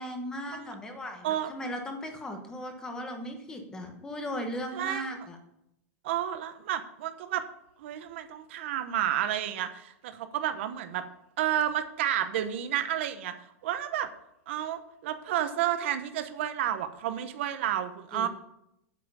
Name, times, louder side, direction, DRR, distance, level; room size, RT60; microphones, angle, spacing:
voice 1, 0.0-5.4 18.1-18.3, equal, 10° left, 5 dB, 1.2 m, -37 dB
voice 2, 4.7-5.1 6.0-7.5 7.8-11.0 11.4-13.3 13.6-14.1 14.5-18.3, right 11 dB, 50° right, 10 dB, 1.0 m, -31 dB
9.1 x 7.6 x 6.9 m, 0.81 s
supercardioid pair, 180°, 8 cm